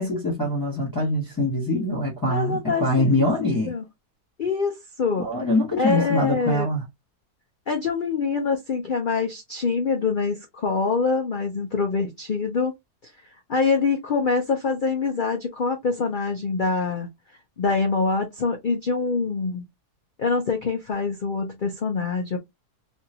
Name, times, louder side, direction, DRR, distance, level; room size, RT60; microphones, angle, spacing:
voice 1, 0.0-3.7 5.2-6.8, left 1 dB, 15° left, 1.1 m, -24 dB
voice 2, 2.3-3.8 4.4-5.3 5.8-6.7 7.7-12.7 13.5-17.1 17.6-19.6 20.2-22.4, left 4 dB, 80° left, 0.4 m, -25 dB
3.1 x 2.6 x 2.8 m
omnidirectional pair, 1.7 m